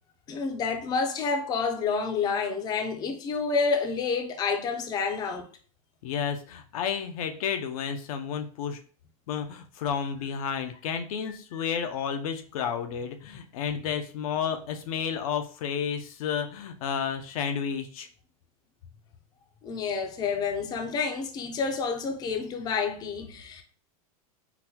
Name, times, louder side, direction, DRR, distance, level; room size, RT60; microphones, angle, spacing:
voice 1, 0.3-5.5 19.6-23.6, left 5 dB, 20° left, 0.4 m, -29 dB
voice 2, 6.0-8.8 9.3-18.1, left 7 dB, 70° left, 0.5 m, -31 dB
3.9 x 2.1 x 2.8 m
supercardioid pair, 130°, 19 cm